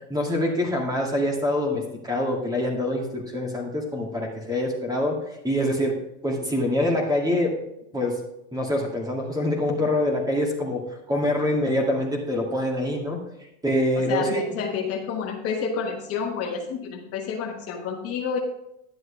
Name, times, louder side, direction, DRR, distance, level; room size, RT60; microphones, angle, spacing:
voice 1, 0.1-6.0 6.2-7.6 7.9-8.2 8.5-13.2 13.6-14.5, left 1 dB, 10° right, 0 dB, 2.3 m, -25 dB
voice 2, 13.9-18.4, left 6 dB, 40° left, 1 dB, 1.3 m, -29 dB
11.0 x 7.9 x 3.4 m, 0.83 s
supercardioid pair, 120°, 37 cm